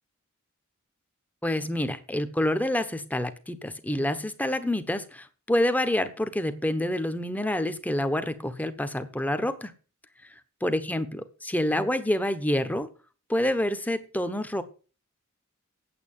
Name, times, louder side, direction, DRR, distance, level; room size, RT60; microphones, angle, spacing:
voice 1, 1.4-9.7 10.6-12.9 13.3-14.6, left 1 dB, 10° left, 1.1 m, -27 dB
8.8 x 8.1 x 9.1 m
head